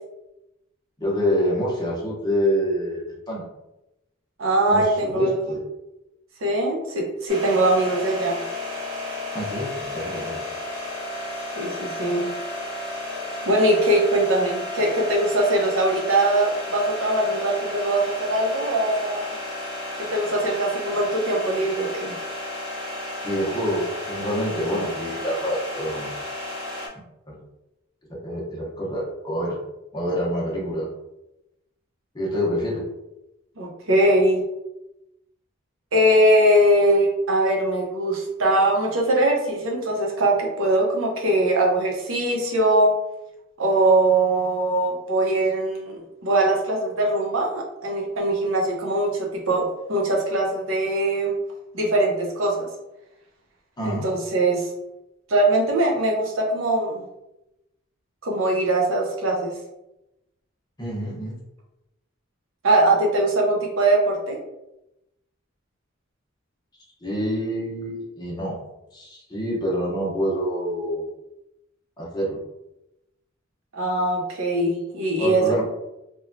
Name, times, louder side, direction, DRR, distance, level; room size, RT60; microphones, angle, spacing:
voice 1, 1.0-3.5 4.7-5.6 9.3-10.4 23.2-26.1 26.9-27.4 28.1-29.6 29.9-30.9 32.1-32.8 53.8-54.1 60.8-61.4 67.0-68.6 68.9-71.1 72.0-72.4 75.2-75.6, equal, 20° left, -4 dB, 0.7 m, -26 dB
voice 2, 4.4-5.3 6.4-8.4 11.6-12.3 13.4-19.3 20.0-22.1 33.6-34.4 35.9-42.9 43.6-51.3 51.7-52.7 53.8-54.7 55.3-57.0 58.2-59.5 62.6-64.4 73.7-75.6, right 1 dB, 75° right, 0 dB, 0.7 m, -21 dB
sound 1, 7.3-26.9, left 1 dB, 25° right, 0.8 m, -32 dB
3.0 x 2.2 x 2.5 m, 0.91 s
head